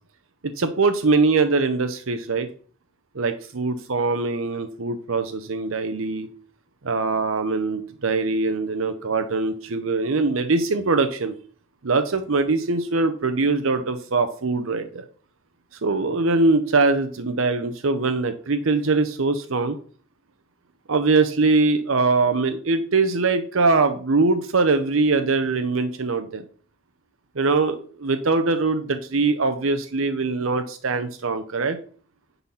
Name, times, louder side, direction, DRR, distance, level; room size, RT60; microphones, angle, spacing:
voice 1, 0.6-2.5 3.1-6.3 6.8-11.4 11.8-15.0 15.8-19.8 20.9-26.4 27.4-31.8, right 3 dB, 70° right, 9 dB, 0.7 m, -22 dB
10.0 x 4.1 x 5.6 m, 0.43 s
head